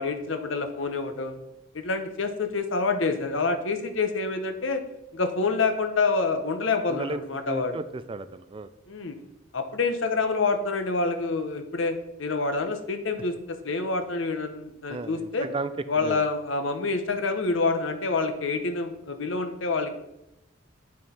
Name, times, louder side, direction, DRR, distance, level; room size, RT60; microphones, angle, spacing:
voice 1, 0.0-1.3 1.7-4.8 5.1-7.8 8.9-9.2 9.5-15.5 15.9-20.0, left 3 dB, 70° left, 7 dB, 1.0 m, -27 dB
voice 2, 6.9-8.7 14.9-15.7 16.0-16.2, right 3 dB, 25° right, 13 dB, 0.4 m, -34 dB
8.9 x 6.2 x 4.3 m, 0.87 s
head